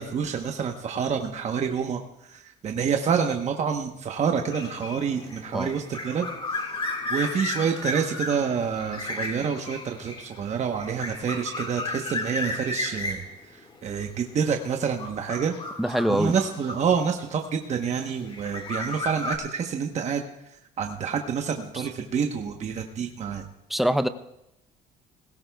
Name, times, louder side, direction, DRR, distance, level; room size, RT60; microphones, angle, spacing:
voice 1, 0.0-6.8 7.1-13.2 13.5-15.5 16.1-20.2 20.8-23.5, right 6 dB, 45° right, 3 dB, 1.0 m, -28 dB
sound 1, 4.5-17.4 18.1-19.4, left 2 dB, 30° left, 1.9 m, -34 dB
voice 2, 15.8-16.3 23.7-24.1, equal, ahead, 10 dB, 0.6 m, -23 dB
20.0 x 17.0 x 2.3 m, 0.85 s
cardioid pair, 110°, 17 cm